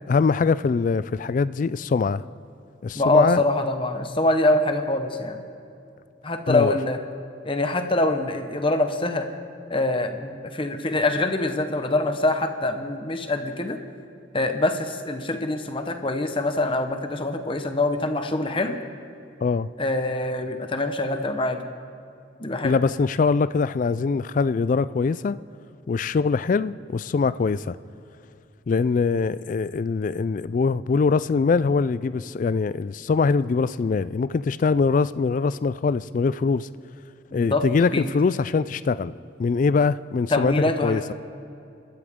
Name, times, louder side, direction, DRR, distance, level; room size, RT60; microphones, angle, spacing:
voice 1, 0.1-2.2 2.8-3.4 6.5-6.7 19.4-19.7 22.6-25.4 25.9-27.8 28.7-36.7 37.3-39.1 39.4-41.1, left 4 dB, 45° left, 16 dB, 0.3 m, -23 dB
voice 2, 2.9-5.4 6.2-7.0 7.4-9.3 9.7-13.8 14.3-18.8 19.8-21.6 22.4-22.8 37.3-37.6 37.9-38.1 40.3-41.1, left 2 dB, 30° left, 7 dB, 1.0 m, -24 dB
29.5 x 13.5 x 3.7 m, 2.6 s
head